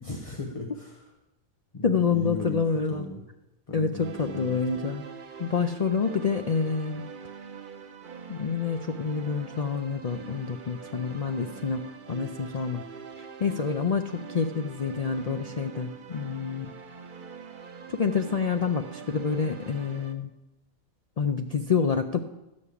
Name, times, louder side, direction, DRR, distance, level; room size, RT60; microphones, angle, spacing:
voice 1, 0.0-1.1 1.7-3.2 3.7-4.6, left 2 dB, 30° left, 2 dB, 1.0 m, -37 dB
voice 2, 1.8-3.1 3.7-5.0 5.4-7.0 8.3-12.8 13.2-16.7 17.9-20.3 21.2-22.2, left 5 dB, 70° left, 5 dB, 0.3 m, -28 dB
sound 1, 4.0-20.1, right 6 dB, 45° right, 0.8 m, -44 dB
13.0 x 5.4 x 8.3 m, 0.98 s
omnidirectional pair, 1.4 m